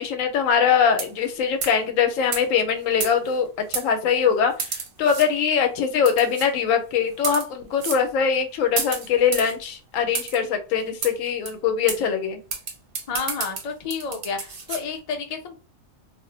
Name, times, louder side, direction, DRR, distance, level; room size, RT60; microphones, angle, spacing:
voice 1, 0.0-12.4, left 7 dB, 80° left, 7 dB, 1.0 m, -22 dB
sound 1, 0.9-1.3 1.6-1.8 2.3-2.4 3.0-3.4 3.7-3.9 4.6-5.3 6.1-6.5 7.1-7.5 7.8-8.0 8.8-9.5 10.1-10.4 11.0-11.1 11.5-11.6 11.9-12.0 12.5-14.8, right 5 dB, 55° right, 0.7 m, -30 dB
voice 2, 13.1-15.6, left 5 dB, 60° left, 4 dB, 0.4 m, -30 dB
2.4 x 2.0 x 3.8 m, 0.34 s
omnidirectional pair, 1.4 m